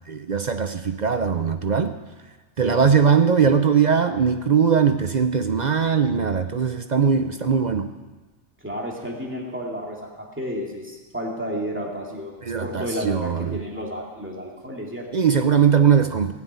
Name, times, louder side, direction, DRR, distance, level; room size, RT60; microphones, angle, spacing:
voice 1, 0.1-1.9 2.6-7.8 12.5-13.6 15.1-16.3, right 6 dB, 45° right, 8 dB, 0.6 m, -20 dB
voice 2, 8.6-15.1, equal, 10° right, -1 dB, 2.4 m, -32 dB
17.5 x 7.3 x 9.4 m, 1.3 s
omnidirectional pair, 1.3 m